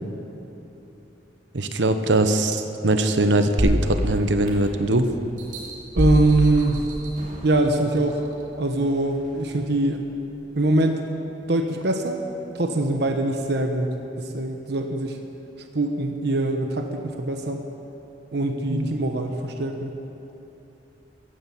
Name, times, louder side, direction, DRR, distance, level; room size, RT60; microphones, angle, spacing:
voice 1, 1.5-5.1 18.7-18.9, right 2 dB, 85° right, 8 dB, 1.0 m, -21 dB
sound 1, 3.6-4.9 5.4-7.5 8.1-8.2, equal, 45° right, 2.7 m, -26 dB
voice 2, 5.9-6.8 7.4-8.2 8.6-10.0 10.6-11.0 11.5-12.2 12.5-15.2 15.7-17.6 18.3-19.9, right 2 dB, 65° right, 4 dB, 1.0 m, -23 dB
14.5 x 10.0 x 8.3 m, 3.0 s
head